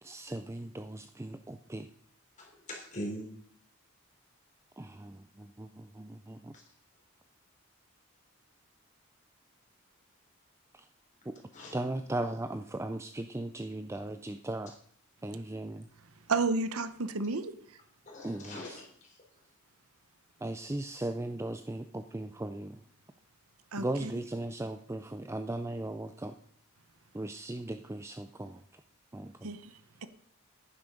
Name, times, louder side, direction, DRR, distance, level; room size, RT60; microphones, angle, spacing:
voice 1, 0.0-1.9 4.8-6.6 10.7-10.9 11.2-11.4 11.7-14.7 15.2-15.9 18.2-18.8 20.4-22.8 23.8-26.4 27.1-28.8 29.1-29.5, right 1 dB, 10° right, 0.4 m, -38 dB
voice 2, 2.4-3.3 11.5-11.7 18.1-19.2, equal, 35° left, 4.0 m, -42 dB
voice 3, 16.3-17.5 23.7-24.1 29.4-29.7, right 3 dB, 80° right, 0.9 m, -31 dB
11.0 x 9.6 x 5.3 m
head